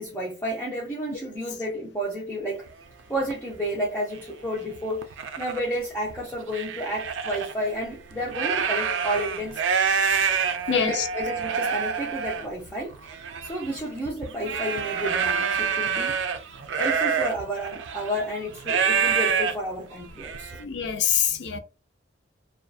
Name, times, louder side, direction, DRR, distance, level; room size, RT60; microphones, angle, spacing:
voice 1, 0.0-2.6 3.1-5.0 5.4-9.6 10.7-12.9 13.4-16.2 16.8-20.6, equal, 10° left, 0.5 m, -31 dB
sound 1, 2.7-2.8 3.3-3.5 4.2-4.3 4.7-5.6 6.1-7.5 8.1-20.6, right 6 dB, 80° right, 0.4 m, -27 dB
voice 2, 10.7-11.1 20.6-21.6, left 7 dB, 65° left, 0.4 m, -25 dB
2.6 x 2.3 x 2.3 m
head